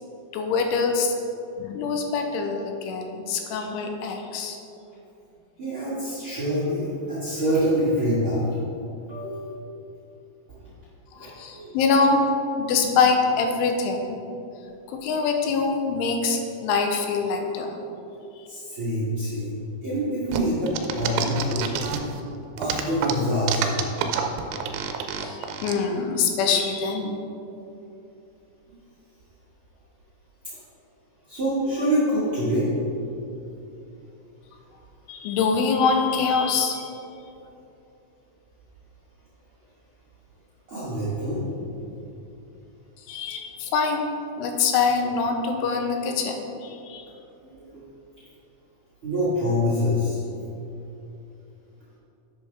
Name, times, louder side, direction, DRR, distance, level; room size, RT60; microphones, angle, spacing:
voice 1, 0.3-1.1 1.6-4.6 11.2-12.2 12.6-14.2 14.9-17.8 18.4-18.5 25.2-27.2 35.1-36.8 43.1-44.1 44.4-47.1, left 5 dB, 90° left, 4 dB, 3.3 m, -24 dB
voice 2, 5.6-8.6 9.1-9.5 11.2-11.3 11.5-11.7 18.5-21.6 22.6-23.9 31.3-32.7 40.7-41.4 47.4-47.8 49.0-50.2, equal, 50° right, -10 dB, 1.5 m, -25 dB
sound 1, 20.3-22.2 22.6-25.7, right 8 dB, 80° right, 2.9 m, -28 dB
11.0 x 7.4 x 3.5 m, 2.8 s
omnidirectional pair, 5.4 m